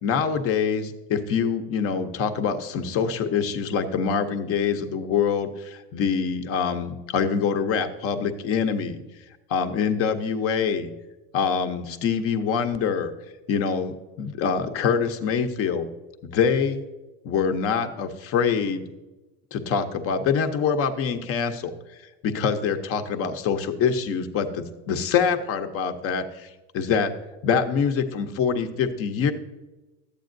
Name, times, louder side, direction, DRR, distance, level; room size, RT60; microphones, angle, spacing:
voice 1, 0.0-9.0 9.5-10.9 11.3-13.1 13.5-15.9 16.2-16.8 17.2-18.8 19.5-21.7 22.2-27.1 27.4-29.3, left 6 dB, 40° left, 7 dB, 0.8 m, -25 dB
12.0 x 8.4 x 2.6 m, 1.1 s
supercardioid pair, 115°, 36 cm